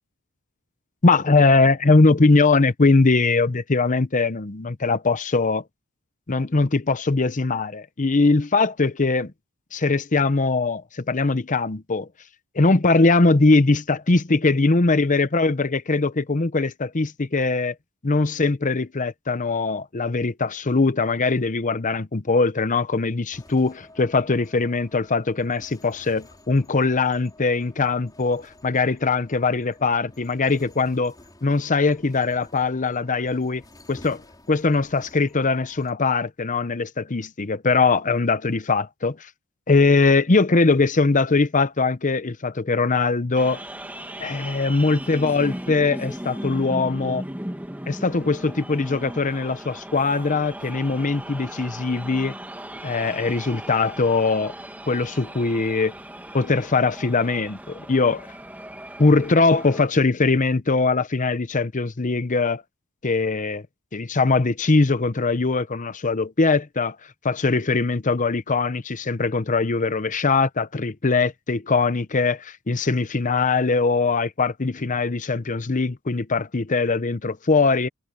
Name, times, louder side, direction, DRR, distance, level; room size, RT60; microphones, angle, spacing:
voice 1, 1.0-5.6 6.3-9.3 9.7-12.1 12.5-17.7 18.0-31.1 31.4-33.6 33.9-34.2 34.5-39.2 39.7-43.6 44.2-47.2 47.9-52.3 52.8-54.5 54.9-55.9 56.3-58.3 59.0-62.6 63.0-63.6 63.9-67.0 67.2-77.9, left 3 dB, 35° left, 0.8 m, -21 dB
sound 1, 23.3-35.9, left 1 dB, 20° left, 4.8 m, -51 dB
sound 2, 43.4-59.9, right 1 dB, 5° right, 1.5 m, -37 dB
head